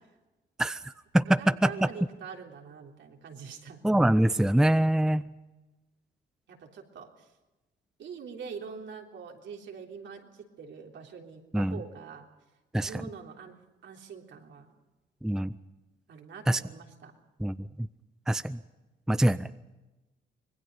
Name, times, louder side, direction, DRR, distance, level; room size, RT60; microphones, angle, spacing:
voice 1, 0.6-1.7 3.8-5.3 11.5-11.8 12.7-12.9 15.2-15.5 16.5-16.6 17.4-17.9 18.3-18.6 19.1-19.5, right 1 dB, 5° right, 14 dB, 0.6 m, -24 dB
voice 2, 1.4-3.8 6.5-7.1 8.0-12.3 12.7-13.6 13.8-14.7 16.1-17.1, right 6 dB, 70° right, 2 dB, 3.5 m, -44 dB
25.5 x 19.5 x 5.5 m, 1.1 s
cardioid pair, 90°, 20 cm